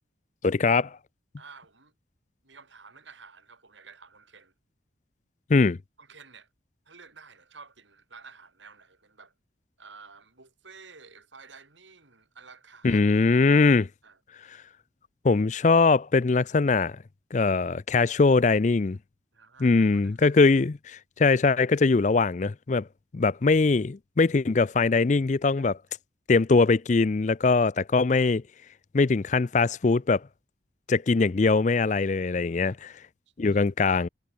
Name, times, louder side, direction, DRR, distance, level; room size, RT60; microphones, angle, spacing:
voice 1, 0.4-1.0 5.5-5.8 12.8-13.9 15.2-17.0 17.3-19.0 19.6-22.9 23.1-25.8 26.3-28.4 28.9-30.2 30.9-32.9 33.4-34.1, left 4 dB, 40° left, 0.4 m, -22 dB
voice 2, 1.4-1.9 2.4-4.5 6.0-6.5 6.9-9.3 9.8-13.0 14.0-14.2 19.3-20.4 32.6-32.8, right 5 dB, 75° right, 4.7 m, -51 dB
head